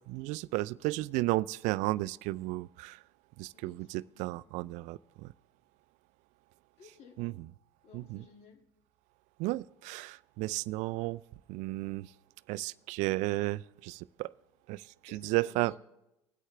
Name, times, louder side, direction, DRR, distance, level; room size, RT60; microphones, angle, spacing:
voice 1, 0.1-3.0 3.4-5.3 7.2-7.3 7.9-8.2 9.4-11.2 11.5-12.1 12.5-14.3 14.7-14.9 15.1-15.7, right 19 dB, 60° right, 0.4 m, -33 dB
voice 2, 3.5-4.4 6.8-7.2 7.8-8.6 15.1-15.8, left 5 dB, 50° left, 2.3 m, -56 dB
21.5 x 8.3 x 3.4 m
hypercardioid pair, 75°, 14 cm